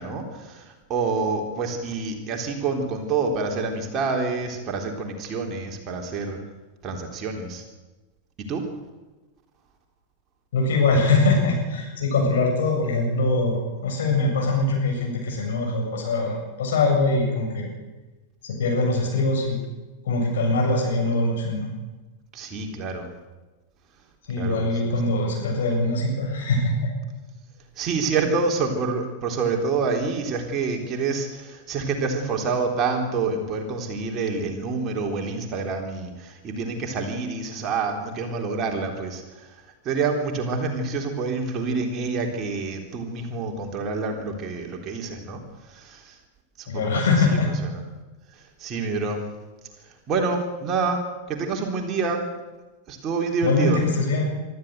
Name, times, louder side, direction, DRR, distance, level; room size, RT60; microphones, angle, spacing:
voice 1, 0.0-6.4 6.8-7.6 8.4-8.7 22.3-23.1 24.4-24.7 27.8-39.6 39.8-45.4 45.7-46.2 46.6-47.7 48.3-49.2 49.8-51.0 51.3-52.2 52.9-53.8, right 4 dB, 30° right, 2 dB, 3.6 m, -27 dB
voice 2, 10.5-17.7 18.4-19.6 20.0-21.7 24.3-26.9 46.7-47.5 53.4-54.2, left 2 dB, 60° left, 0 dB, 7.6 m, -22 dB
24.5 x 13.5 x 8.1 m, 1.2 s
figure-of-eight pair, 90°, 0 cm